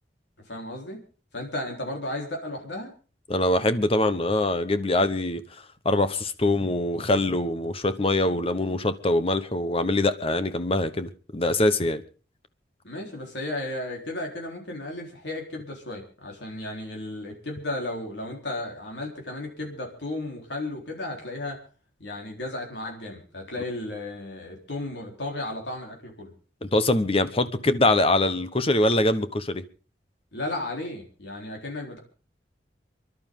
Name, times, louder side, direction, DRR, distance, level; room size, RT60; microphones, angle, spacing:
voice 1, 0.5-1.0 1.3-2.9 12.8-21.6 22.0-26.3 30.3-32.0, left 2 dB, 85° left, 4.0 m, -34 dB
voice 2, 3.3-5.4 5.8-12.0 26.6-29.6, left 1 dB, 35° left, 1.1 m, -23 dB
28.0 x 11.5 x 3.8 m
head